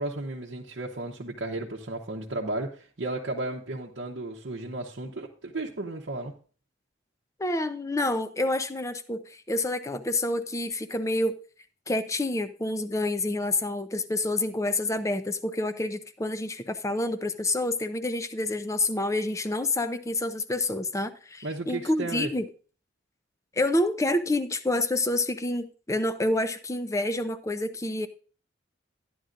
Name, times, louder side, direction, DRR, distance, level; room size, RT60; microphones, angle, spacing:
voice 1, 0.0-6.3 21.4-22.3, right 2 dB, 60° right, -2 dB, 0.9 m, -34 dB
voice 2, 7.4-11.3 11.9-22.5 23.6-28.1, left 2 dB, 15° left, 10 dB, 0.6 m, -28 dB
12.5 x 10.0 x 2.5 m, 0.39 s
head